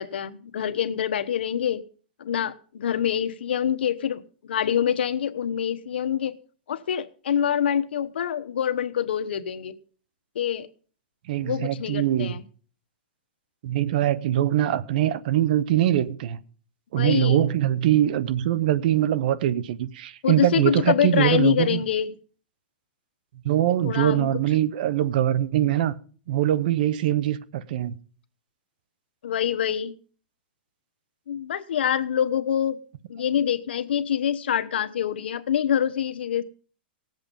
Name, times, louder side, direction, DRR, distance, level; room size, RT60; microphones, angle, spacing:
voice 1, 0.0-1.8 2.2-6.4 6.7-9.7 10.3-10.7 11.4-12.4 17.0-17.5 20.2-22.1 23.8-24.3 29.2-29.9 31.3-32.8 33.1-36.4, left 9 dB, 80° left, 1.0 m, -25 dB
voice 2, 11.3-12.4 13.6-16.4 16.9-21.8 23.4-25.9 26.3-27.9, right 12 dB, 55° right, 0.9 m, -23 dB
18.5 x 7.9 x 5.3 m
hypercardioid pair, 150°, 6 cm